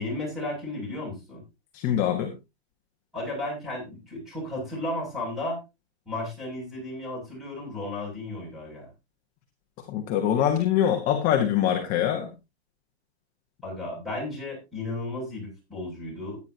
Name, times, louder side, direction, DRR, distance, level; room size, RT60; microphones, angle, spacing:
voice 1, 0.0-1.4 3.1-5.6 6.1-8.9 13.6-16.4, left 2 dB, ahead, -2 dB, 7.1 m, -34 dB
voice 2, 1.7-2.3 9.9-12.3, left 10 dB, 25° left, 4 dB, 1.3 m, -24 dB
15.0 x 9.5 x 2.9 m, 0.25 s
hypercardioid pair, 155°, 33 cm